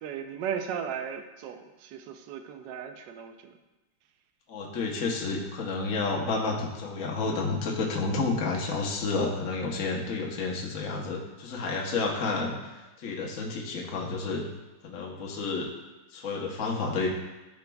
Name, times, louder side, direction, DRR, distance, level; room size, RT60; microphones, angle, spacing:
voice 1, 0.0-3.5, right 8 dB, 70° right, 6 dB, 1.1 m, -36 dB
voice 2, 4.5-12.6 13.0-14.4 14.8-15.7 16.1-17.1, left 3 dB, 55° left, -1 dB, 1.0 m, -30 dB
14.0 x 5.1 x 2.3 m, 1.1 s
omnidirectional pair, 2.3 m